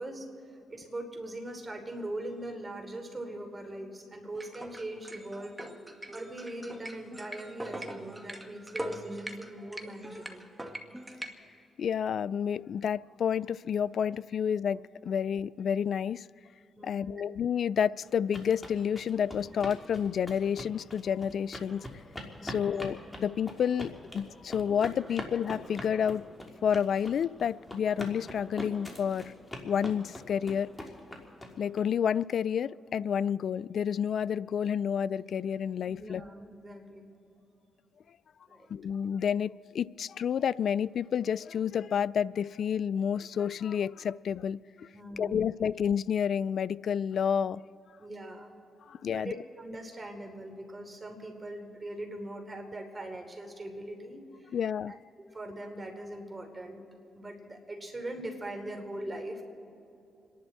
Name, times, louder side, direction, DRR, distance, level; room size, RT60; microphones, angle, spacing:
voice 1, 0.0-5.6 6.1-10.4 16.8-17.2 22.4-22.9 35.8-37.1 38.5-38.7 44.9-45.5 48.0-48.5 48.9-54.6 54.9-55.0 55.3-56.8 57.1-59.4, right 1 dB, 30° right, 4 dB, 3.3 m, -41 dB
sound 1, 4.3-11.3, right 1 dB, 10° right, 1.8 m, -42 dB
voice 2, 11.8-16.3 16.8-21.9 22.4-26.2 26.6-29.3 29.6-30.7 31.6-36.2 38.7-44.9 45.2-47.6 48.9-49.3 54.5-54.9, left 8 dB, 70° left, 21 dB, 0.3 m, -30 dB
sound 2, 18.0-31.8, left 1 dB, 20° left, 3.2 m, -43 dB
29.0 x 11.0 x 4.3 m, 2.8 s
supercardioid pair, 55°, 0 cm